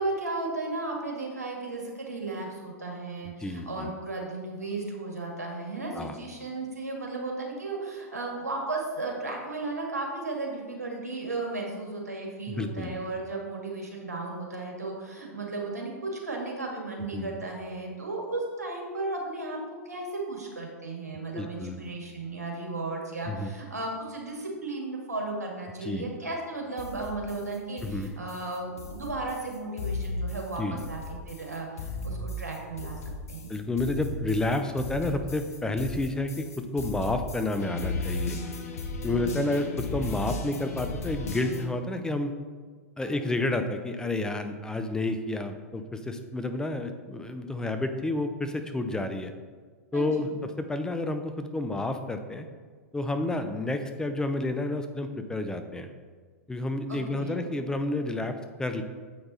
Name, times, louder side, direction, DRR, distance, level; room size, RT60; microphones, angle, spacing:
voice 1, 0.0-19.6 19.9-33.0 33.3-33.5 39.1-39.6 43.0-43.3 49.9-50.3 56.9-57.4, right 2 dB, 85° right, -1 dB, 1.8 m, -35 dB
voice 2, 3.4-3.9 5.9-6.2 12.5-13.0 17.1-17.3 21.3-21.8 23.3-23.5 25.8-26.1 27.8-28.1 30.6-30.8 33.5-38.4 39.0-42.3 43.0-49.3 49.9-52.5 52.9-55.9 56.5-58.8, left 2 dB, 10° left, 7 dB, 0.5 m, -30 dB
sound 1, 26.8-41.7, left 3 dB, 65° left, 1.0 m, -36 dB
7.7 x 5.3 x 4.1 m, 1.5 s
figure-of-eight pair, 100°, 9 cm